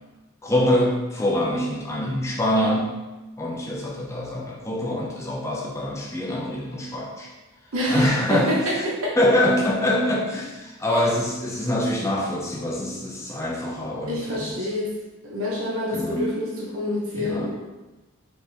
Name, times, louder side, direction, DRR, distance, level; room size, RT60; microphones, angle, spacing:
voice 1, 0.4-3.0 3.4-7.3 7.9-8.6 9.2-14.5 15.9-16.3 17.2-17.5, left 1 dB, 15° left, -3 dB, 0.5 m, -24 dB
voice 2, 7.7-9.2 10.9-11.1 14.1-14.9 15.2-17.6, left 1 dB, 70° right, -5 dB, 1.0 m, -27 dB
4.2 x 3.0 x 3.4 m, 1.1 s
head